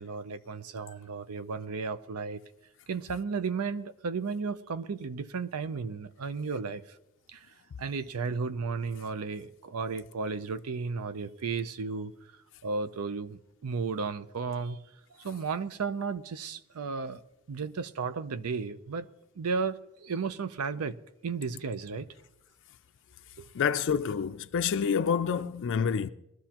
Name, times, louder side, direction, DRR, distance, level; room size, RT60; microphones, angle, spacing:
voice 1, 0.0-2.4 2.9-7.0 7.3-12.1 12.6-14.8 15.1-17.2 17.5-19.1 19.4-21.0 21.2-22.1 23.4-23.5, right 4 dB, 80° right, 0.6 m, -34 dB
voice 2, 23.5-26.1, left 7 dB, 55° left, 0.4 m, -28 dB
21.0 x 13.0 x 2.9 m
head